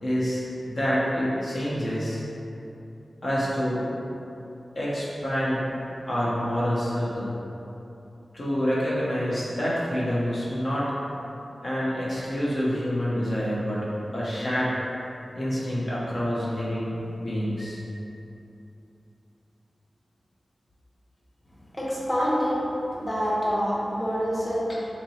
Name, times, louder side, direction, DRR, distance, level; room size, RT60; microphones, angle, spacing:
voice 1, 0.0-2.2 3.2-3.9 4.8-5.6 6.1-7.3 8.3-10.9 11.6-14.7 15.3-17.8 24.7-24.8, equal, 65° left, -8 dB, 0.8 m, -27 dB
voice 2, 21.7-22.6 23.0-24.7, equal, 25° left, -6 dB, 0.9 m, -26 dB
4.2 x 2.9 x 3.1 m, 2.9 s
wide cardioid pair, 65°, 0 cm